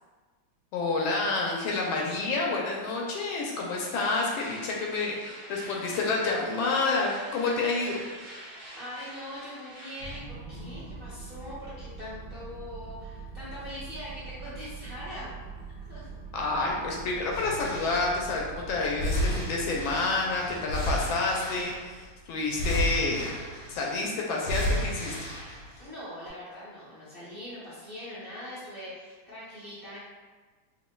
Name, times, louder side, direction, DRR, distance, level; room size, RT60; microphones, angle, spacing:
voice 1, 0.7-8.0 16.3-23.3 23.7-25.3, left 3 dB, 75° left, -2 dB, 1.3 m, -29 dB
sound 1, 3.8-10.2, equal, 85° right, 1.8 m, -46 dB
voice 2, 8.3-15.3 15.9-16.1 16.5-16.8 25.8-30.0, left 1 dB, 40° right, -11 dB, 0.8 m, -42 dB
sound 2, 10.0-24.5, right 4 dB, 65° right, 1.0 m, -44 dB
sound 3, 17.3-18.3 19.0-22.0 22.5-23.9 24.4-25.8 26.3-26.4, left 1 dB, 55° left, 0.9 m, -32 dB
5.1 x 2.5 x 2.2 m, 1.4 s
omnidirectional pair, 2.3 m